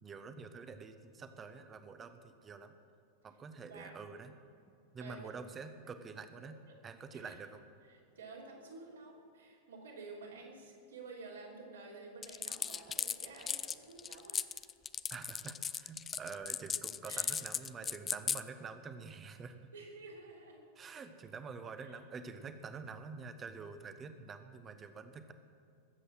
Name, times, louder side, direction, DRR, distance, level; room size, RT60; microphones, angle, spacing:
voice 1, 0.0-2.7 3.2-4.4 4.9-6.6 6.8-7.6 15.1-19.5 20.8-25.3, right 5 dB, 20° right, 9 dB, 1.0 m, -47 dB
voice 2, 3.7-4.0 5.0-5.2 7.1-7.3 7.9-14.7 17.1-17.4 17.8-17.9 19.7-20.6 21.8-21.9, right 3 dB, 70° right, -2 dB, 3.3 m, -51 dB
sound 1, 12.2-18.4, left 7 dB, 20° left, 0.4 m, -37 dB
20.5 x 8.3 x 6.3 m, 2.5 s
figure-of-eight pair, 90°, 0 cm